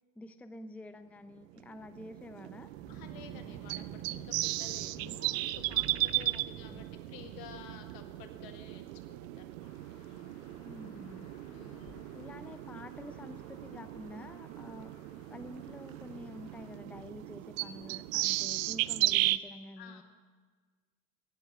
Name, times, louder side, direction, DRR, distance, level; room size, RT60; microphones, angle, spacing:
voice 1, 0.2-2.7 6.3-7.1 10.6-11.3 12.1-15.0 15.3-20.0, left 1 dB, 5° left, 11 dB, 0.5 m, -48 dB
sound 1, 1.6-19.4, right 18 dB, 80° right, 0.5 m, -36 dB
sound 2, 2.7-8.7, right 6 dB, 25° right, 0.8 m, -50 dB
voice 2, 2.9-9.5 11.5-12.1 19.8-20.0, left 8 dB, 60° left, 6 dB, 1.8 m, -52 dB
sound 3, 9.6-16.8, left 8 dB, 40° left, 1.0 m, -60 dB
16.5 x 7.8 x 7.3 m, 1.5 s
hypercardioid pair, 75°, 39 cm